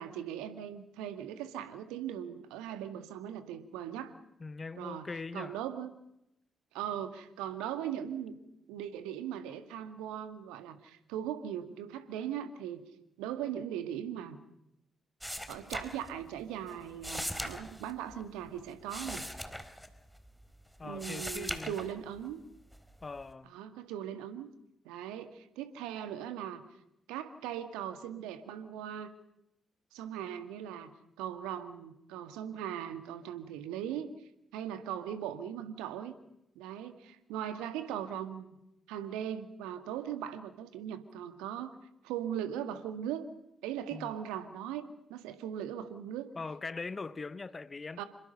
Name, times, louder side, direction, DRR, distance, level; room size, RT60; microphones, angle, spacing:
voice 1, 0.0-4.1 4.8-5.1 5.3-5.9 6.7-8.3 8.7-12.8 13.2-14.4 15.2-19.2 20.8-22.4 23.5-24.5 24.9-26.6 27.1-29.1 29.9-30.9 31.2-34.1 34.5-36.1 36.6-38.6 38.9-41.8 42.0-43.3 43.6-46.3 48.0-48.1, right 10 dB, 70° right, 2.0 m, -39 dB
voice 2, 4.4-5.6 20.8-21.8 23.0-23.5 43.9-44.1 46.3-48.0, left 4 dB, 35° left, 1.3 m, -41 dB
sound 1, 15.2-16.4 16.7-20.5 20.8-22.3 22.7-23.3, equal, ahead, 3.9 m, -40 dB
27.5 x 25.0 x 5.6 m
figure-of-eight pair, 40°, 0 cm